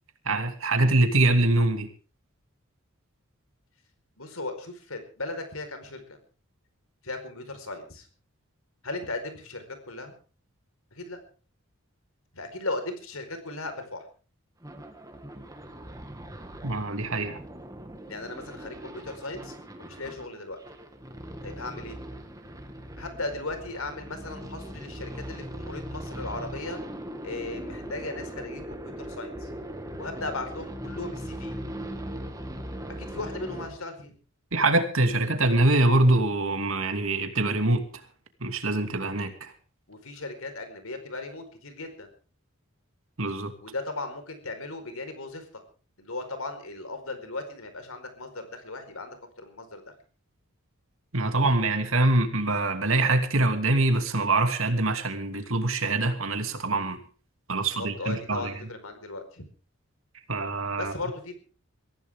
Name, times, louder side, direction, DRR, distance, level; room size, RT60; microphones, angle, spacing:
voice 1, 0.2-1.9 16.6-17.4 34.5-37.8 38.4-39.5 43.2-43.5 51.1-57.0 57.5-58.5 60.3-60.9, right 2 dB, 70° right, 7 dB, 2.7 m, -24 dB
voice 2, 4.2-6.2 7.0-8.1 8.8-10.2 10.9-11.2 12.3-14.0 18.1-20.6 21.4-22.0 23.0-26.8 27.2-29.5 30.0-31.6 32.9-34.1 39.9-42.1 43.6-45.4 46.0-49.9 57.6-59.4 60.8-61.4, left 2 dB, 80° left, 7 dB, 4.7 m, -37 dB
sound 1, 14.6-33.7, equal, 15° right, 2.0 m, -40 dB
23.0 x 16.0 x 3.7 m, 0.38 s
head